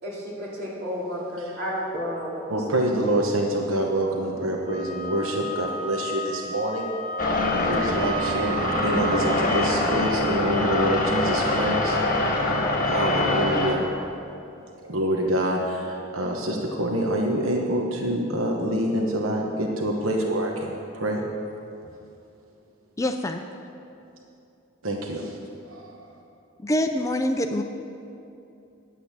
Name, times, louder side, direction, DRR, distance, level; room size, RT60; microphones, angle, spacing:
voice 1, 0.0-2.4 2.7-2.8, equal, 50° right, -7 dB, 3.4 m, -31 dB
voice 2, 2.5-6.9 7.7-12.0 12.8-13.8 14.8-21.2 24.8-25.3 25.7-25.9, right 1 dB, 80° right, 0 dB, 1.1 m, -26 dB
Wind instrument woodwind instrument, 4.6-9.4, right 1 dB, 30° right, 1.7 m, -33 dB
sound 1, 7.2-13.8, left 2 dB, 40° left, 1.5 m, -24 dB
voice 3, 23.0-23.4 26.6-27.6, left 1 dB, 15° left, 6 dB, 0.4 m, -25 dB
10.5 x 8.3 x 7.3 m, 2.6 s
head